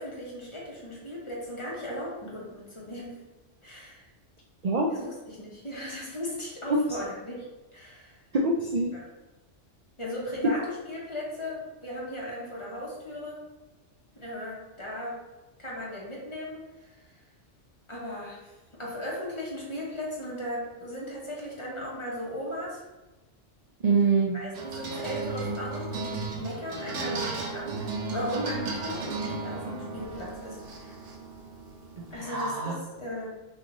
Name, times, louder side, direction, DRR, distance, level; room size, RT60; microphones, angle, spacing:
voice 1, 0.0-3.2 3.6-4.0 4.9-7.5 7.7-8.2 8.9-9.1 10.0-13.4 14.2-15.2 15.6-17.0 17.9-22.8 24.3-30.9 32.1-33.3, left 1 dB, 25° left, -5 dB, 1.2 m, -37 dB
voice 2, 8.3-8.9 23.8-24.3 32.0-32.8, right 3 dB, 50° right, 0 dB, 0.5 m, -25 dB
sound 1, 24.5-32.1, right 3 dB, 85° right, 1.1 m, -35 dB
6.6 x 2.7 x 3.0 m, 1.1 s
omnidirectional pair, 1.2 m